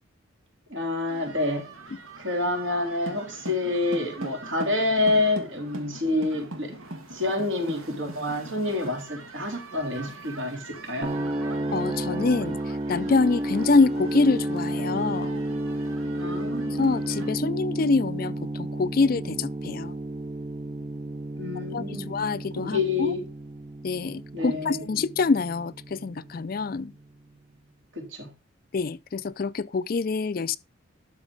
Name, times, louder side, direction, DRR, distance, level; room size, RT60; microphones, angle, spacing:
voice 1, 0.7-1.7 2.2-6.7 7.1-11.1 16.2-16.8 21.4-22.1 22.6-23.2 24.3-24.8 27.9-28.3, left 2 dB, 65° right, 3.4 m, -28 dB
sound 1, 1.1-17.3, right 2 dB, 90° right, 1.8 m, -42 dB
sound 2, 11.0-26.9, right 1 dB, 25° right, 0.4 m, -32 dB
voice 2, 11.7-15.4 16.7-20.0 21.7-23.1 23.8-26.9 28.7-30.6, left 4 dB, 45° left, 0.4 m, -25 dB
12.0 x 4.5 x 5.3 m
head